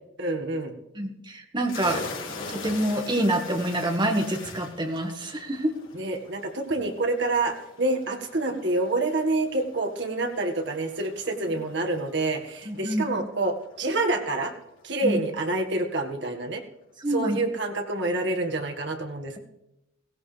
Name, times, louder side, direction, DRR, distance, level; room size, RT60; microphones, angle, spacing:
voice 1, 0.2-0.7 5.9-14.5 14.8-16.6 17.1-19.4, right 2 dB, 60° right, 4 dB, 1.8 m, -27 dB
voice 2, 1.0-2.0 2.5-5.7 12.7-13.0 15.0-15.2 17.0-17.4, right 1 dB, 25° right, 3 dB, 1.7 m, -26 dB
sound 1, 1.6-15.0, left 4 dB, 75° left, 3.7 m, -43 dB
17.0 x 16.5 x 3.4 m, 0.88 s
head